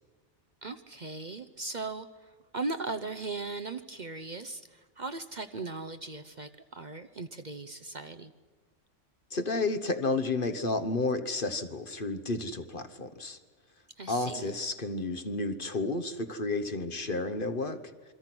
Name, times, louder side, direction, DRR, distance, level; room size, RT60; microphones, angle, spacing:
voice 1, 0.6-8.3 14.0-14.5, right 3 dB, 40° right, 9 dB, 0.9 m, -38 dB
voice 2, 9.3-13.4 14.1-17.8, left 3 dB, 45° left, 10 dB, 1.3 m, -31 dB
28.0 x 23.5 x 6.1 m, 1.4 s
omnidirectional pair, 1.2 m